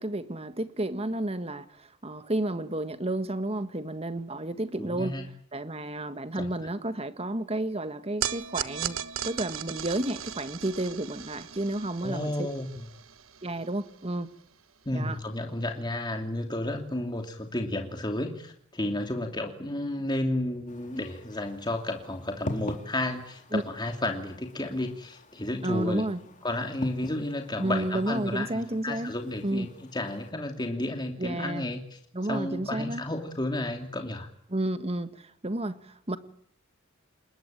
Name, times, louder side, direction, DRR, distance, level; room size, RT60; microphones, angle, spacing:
voice 1, 0.0-9.0 9.2-12.5 13.4-14.3 14.9-15.2 23.5-23.6 25.6-26.2 27.6-29.1 29.4-29.7 31.2-31.7 32.1-33.0 34.5-36.2, right 1 dB, 30° right, 11 dB, 1.6 m, -31 dB
voice 2, 4.8-5.3 6.3-6.5 12.0-12.7 14.9-26.0 26.4-32.0 32.3-34.3, left 1 dB, 20° left, 3 dB, 2.8 m, -32 dB
sound 1, 8.2-14.6, right 9 dB, 70° right, 1.4 m, -37 dB
sound 2, 20.7-30.3, left 1 dB, 35° left, 3.6 m, -43 dB
28.0 x 21.0 x 9.0 m, 0.67 s
head